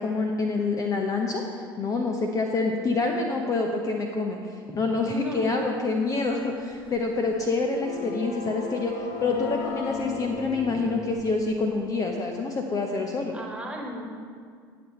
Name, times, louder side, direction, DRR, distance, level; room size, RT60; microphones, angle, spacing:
voice 1, 0.0-1.4 1.8-8.9 9.2-13.4, left 3 dB, 25° left, 3 dB, 0.9 m, -27 dB
voice 2, 4.7-5.5 7.9-8.4 13.3-14.0, equal, 10° right, 0 dB, 1.9 m, -37 dB
sound 1, 6.3-11.8, left 4 dB, 55° left, 1.1 m, -37 dB
18.0 x 7.1 x 3.1 m, 2.1 s
figure-of-eight pair, 70°, 13 cm